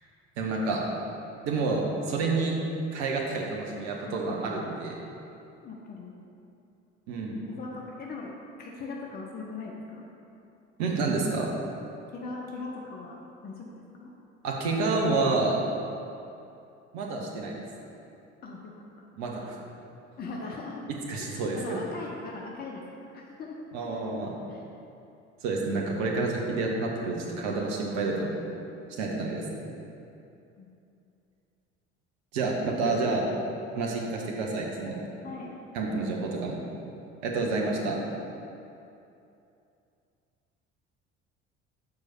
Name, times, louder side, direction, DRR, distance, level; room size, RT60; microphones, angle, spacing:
voice 1, 0.4-0.8 1.4-2.6 2.9-5.0 7.1-7.4 10.8-11.5 14.4-15.6 16.9-17.6 19.2-19.6 21.1-21.8 23.7-24.3 25.4-28.3 29.0-29.7 32.3-33.2 33.8-34.9 35.7-36.6 37.2-38.0, right 3 dB, 60° right, -1 dB, 1.0 m, -29 dB
voice 2, 5.6-6.2 7.5-10.1 12.1-14.1 18.4-18.7 20.2-20.8 21.2-23.6 24.5-24.6 30.6-30.7 35.2-35.6 37.5-37.7, left 3 dB, 25° left, -2 dB, 0.8 m, -40 dB
6.6 x 4.8 x 4.2 m, 2.7 s
figure-of-eight pair, 55°, 35 cm